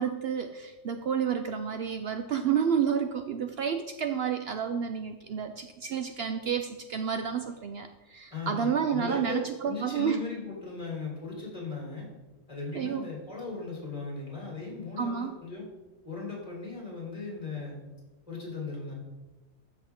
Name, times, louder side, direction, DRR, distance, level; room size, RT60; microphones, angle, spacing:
voice 1, 0.0-10.2 12.7-13.0 15.0-15.3, right 7 dB, 60° right, 7 dB, 0.7 m, -30 dB
voice 2, 8.3-12.1 12.5-15.7 16.0-17.8 18.3-18.9, left 4 dB, 25° left, -3 dB, 3.5 m, -37 dB
13.5 x 6.0 x 3.6 m, 1.1 s
omnidirectional pair, 1.3 m